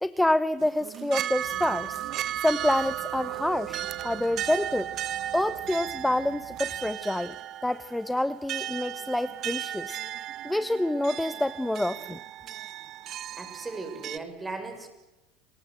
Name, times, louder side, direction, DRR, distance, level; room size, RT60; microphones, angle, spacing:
voice 1, 0.0-2.0 2.4-4.9 5.3-7.4 7.6-10.0 10.4-12.2, left 1 dB, 5° left, 14 dB, 0.7 m, -27 dB
sound 1, 0.6-14.2, right 12 dB, 50° right, 1.0 m, -35 dB
sound 2, 1.4-6.9, right 7 dB, 65° right, 6.3 m, -50 dB
voice 2, 13.3-14.9, right 3 dB, 15° right, 6 dB, 6.1 m, -37 dB
29.5 x 19.5 x 7.8 m, 1.1 s
supercardioid pair, 105°, 0 cm